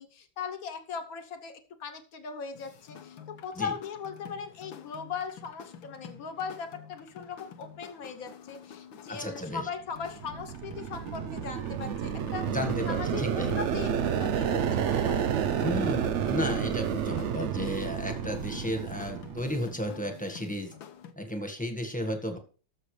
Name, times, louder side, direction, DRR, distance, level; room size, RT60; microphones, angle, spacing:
voice 1, 0.0-12.6 12.8-15.4, left 6 dB, 55° left, 8 dB, 1.4 m, -39 dB
sound 1, 2.5-21.1, left 7 dB, 90° left, 1.8 m, -49 dB
voice 2, 9.1-9.7 12.5-13.6 15.6-20.7 21.2-22.4, left 1 dB, 5° left, 5 dB, 1.4 m, -33 dB
sound 2, 10.0-19.8, right 8 dB, 70° right, 0.6 m, -30 dB
19.0 x 6.8 x 3.3 m, 0.38 s
omnidirectional pair, 2.0 m